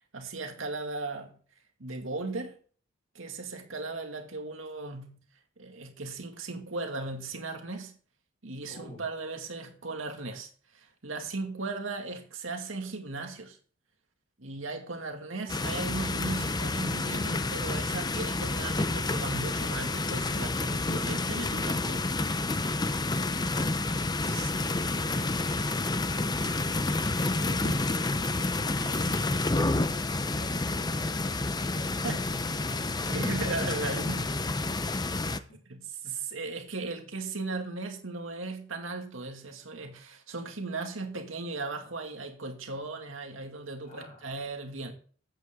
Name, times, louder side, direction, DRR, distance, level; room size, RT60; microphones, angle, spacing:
voice 1, 0.1-1.4 1.8-2.6 3.1-5.2 5.6-8.0 8.4-13.6 14.4-22.0 24.2-24.5 27.6-27.7 32.0-32.3 33.1-34.3 35.7-44.9, right 3 dB, 90° right, 2.2 m, -37 dB
voice 2, 8.7-9.0 23.0-23.8 24.2-27.6 30.1-31.0 31.5-35.6 36.0-36.2 43.8-44.2, left 1 dB, 45° left, 4.7 m, -49 dB
sound 1, 15.5-35.4, left 2 dB, 20° left, 0.6 m, -29 dB
14.0 x 8.6 x 3.7 m
head